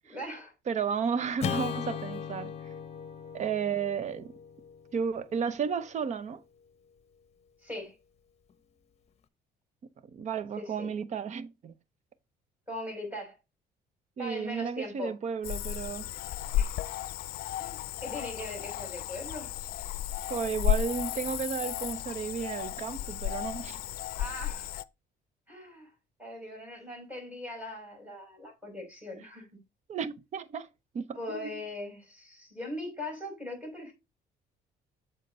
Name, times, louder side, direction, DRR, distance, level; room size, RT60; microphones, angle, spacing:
voice 1, 0.1-0.5 7.6-7.9 10.6-10.9 12.7-13.4 14.2-15.2 16.5-16.8 17.6-19.5 24.2-24.7 25.5-25.9 26.2-29.4 31.1-33.9, left 1 dB, 10° right, 5.1 m, -40 dB
voice 2, 0.7-2.5 3.3-4.3 4.9-6.4 10.1-11.7 14.2-16.1 20.3-23.8 29.9-30.7 30.9-31.6, right 6 dB, 45° right, 0.8 m, -33 dB
Acoustic guitar / Strum, 1.4-5.8, left 8 dB, 40° left, 0.9 m, -38 dB
Cricket / Frog, 15.4-24.8, left 13 dB, 65° left, 0.5 m, -33 dB
7.7 x 4.5 x 4.2 m
cardioid pair, 110°, 17 cm